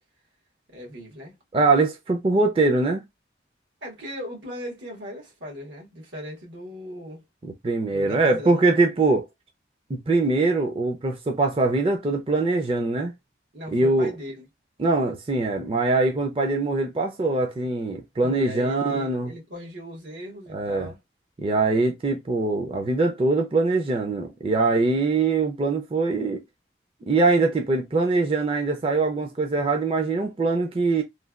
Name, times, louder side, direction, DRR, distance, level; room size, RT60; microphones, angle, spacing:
voice 1, 0.7-1.4 3.8-7.2 7.9-8.6 13.5-14.4 18.2-21.0, equal, 85° right, 1.4 m, -38 dB
voice 2, 1.5-3.0 7.4-9.3 9.9-13.1 13.7-14.1 14.8-19.3 20.5-20.9 21.4-26.4 27.0-31.0, right 3 dB, 30° right, 0.4 m, -22 dB
3.2 x 2.2 x 2.3 m
head